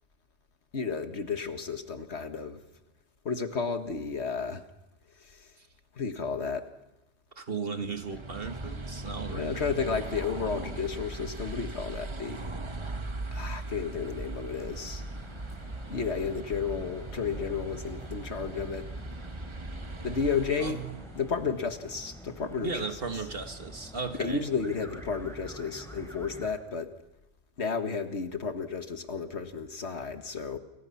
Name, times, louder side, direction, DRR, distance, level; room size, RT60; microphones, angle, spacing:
voice 1, 0.7-2.6 3.3-4.6 5.2-5.5 6.0-6.7 9.3-12.5 13.3-15.0 15.9-18.9 20.0-20.8 21.2-22.9 24.2-26.9 27.6-30.6, left 5 dB, 60° left, 7 dB, 1.9 m, -32 dB
voice 2, 7.3-9.7 20.6-21.0 22.6-24.4, right 4 dB, 50° right, 7 dB, 1.7 m, -36 dB
sound 1, 7.9-21.4, right 2 dB, 25° right, 1.1 m, -39 dB
sound 2, 13.7-26.5, equal, ahead, 5.1 m, -47 dB
29.0 x 23.5 x 5.8 m, 0.96 s
omnidirectional pair, 1.3 m